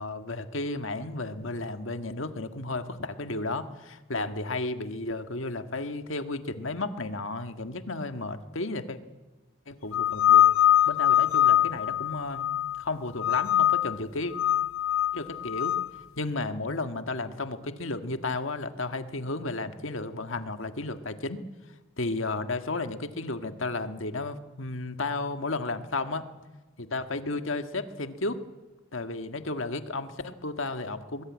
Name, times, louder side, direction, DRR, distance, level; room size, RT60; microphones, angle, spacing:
voice 1, 0.0-9.0 9.7-10.4 10.9-12.5 12.8-14.3 15.1-15.7 16.2-21.4 22.0-26.3 26.8-28.4 28.9-31.2, left 2 dB, 65° left, 8 dB, 1.7 m, -33 dB
sound 1, 9.9-12.8 13.2-14.0 14.3-15.9, left 11 dB, 90° left, 0.8 m, -23 dB
23.0 x 21.0 x 9.5 m, 1.1 s
head